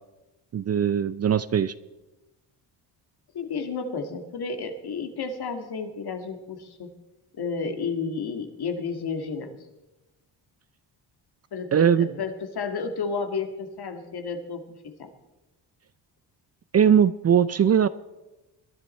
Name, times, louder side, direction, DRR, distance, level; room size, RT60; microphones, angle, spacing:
voice 1, 0.5-1.7 11.7-12.1 16.7-17.9, right 8 dB, 35° right, 16 dB, 0.5 m, -20 dB
voice 2, 3.3-6.9 7.3-9.6 11.5-15.1, left 5 dB, 60° left, 6 dB, 2.0 m, -32 dB
21.0 x 11.0 x 4.4 m, 1.1 s
cardioid pair, 85°, 44 cm